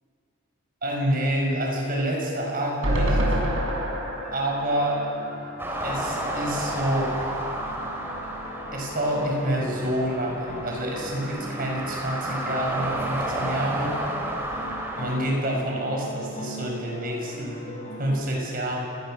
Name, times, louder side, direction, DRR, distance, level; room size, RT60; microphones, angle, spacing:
voice 1, 0.8-3.2 4.3-5.1 5.8-7.1 8.7-14.0 15.0-17.7 18.0-18.9, right 1 dB, 45° right, -1 dB, 6.0 m, -27 dB
sound 1, 2.8-6.1 6.4-6.5 6.8-6.9, right 1 dB, 70° right, 6.1 m, -27 dB
sound 2, 3.9-18.2, equal, 30° left, 6.4 m, -40 dB
sound 3, 5.6-15.2, right 1 dB, 10° right, 3.2 m, -32 dB
29.0 x 19.5 x 6.5 m, 2.7 s
head